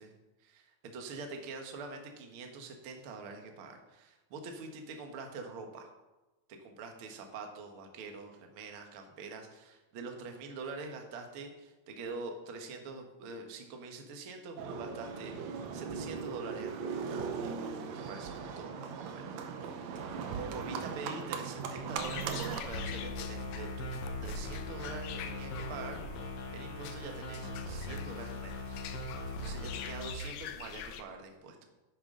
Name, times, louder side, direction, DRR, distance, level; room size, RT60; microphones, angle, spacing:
voice 1, 0.4-5.9 6.5-17.1 17.9-20.0 20.3-31.7, right 3 dB, 55° right, 4 dB, 1.5 m, -45 dB
Livestock farm animals working animals, 14.6-22.6, right 6 dB, 75° right, 1.5 m, -38 dB
sound 1, 22.0-31.0, left 9 dB, 75° left, 2.1 m, -45 dB
sound 2, 22.6-30.1, left 2 dB, 60° left, 2.2 m, -40 dB
10.5 x 9.0 x 3.8 m, 1.1 s
omnidirectional pair, 4.1 m